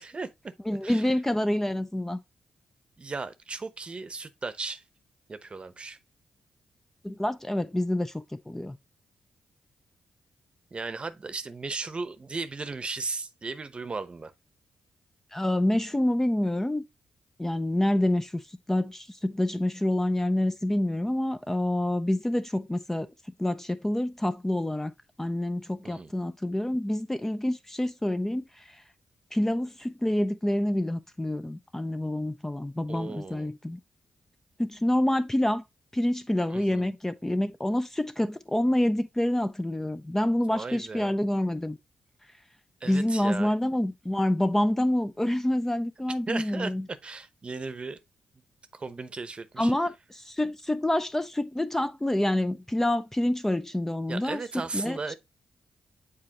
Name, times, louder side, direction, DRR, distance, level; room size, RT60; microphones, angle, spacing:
voice 1, 0.0-0.5 0.8-1.1 3.0-4.8 5.3-6.0 10.7-14.3 25.8-26.1 32.9-33.5 36.5-36.9 40.5-41.1 42.8-43.5 46.3-48.0 48.7-49.7 54.1-55.1, right 4 dB, 40° right, 0.8 m, -36 dB
voice 2, 0.7-2.2 7.0-8.8 15.3-16.8 17.4-18.4 18.7-23.1 23.4-24.9 25.2-28.6 29.3-33.8 34.6-35.6 35.9-41.8 42.9-46.9 49.6-54.4 54.7-55.1, left 1 dB, 15° left, 0.5 m, -27 dB
7.6 x 4.2 x 2.9 m
supercardioid pair, 50°, 3 cm